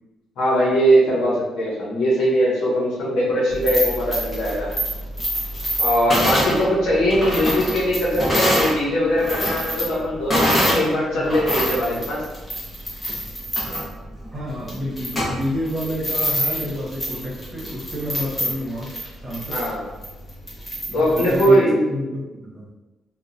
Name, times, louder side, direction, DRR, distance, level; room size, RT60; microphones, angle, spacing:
voice 1, 0.4-4.7 5.8-12.2 19.5-19.8 20.9-21.8, equal, 85° left, -5 dB, 0.9 m, -20 dB
sound 1, 3.5-8.8 9.1-10.9 11.2-21.5, equal, 25° left, 1.1 m, -25 dB
voice 2, 10.4-12.0 14.3-18.9 19.2-19.6 20.9-21.6 21.9-22.7, equal, 20° right, -6 dB, 1.2 m, -30 dB
2.8 x 2.3 x 2.5 m, 1.1 s
cardioid pair, 90°, 0 cm